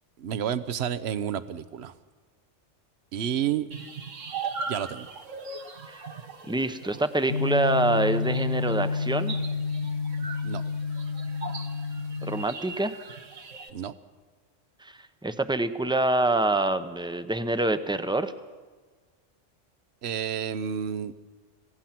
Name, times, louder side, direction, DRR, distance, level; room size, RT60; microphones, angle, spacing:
voice 1, 0.2-1.9 3.1-3.7 4.7-5.1 10.4-10.6 13.7-13.9 20.0-21.1, right 9 dB, 60° right, 14 dB, 1.0 m, -30 dB
sound 1, 3.7-13.7, right 4 dB, 80° right, 1.7 m, -40 dB
voice 2, 6.5-9.3 12.2-12.9 14.8-14.9 15.2-18.3, right 2 dB, 5° right, 10 dB, 0.7 m, -26 dB
sound 2, 7.3-12.5, left 4 dB, 65° left, 1.5 m, -29 dB
26.0 x 17.5 x 6.0 m, 1.4 s
omnidirectional pair, 1.3 m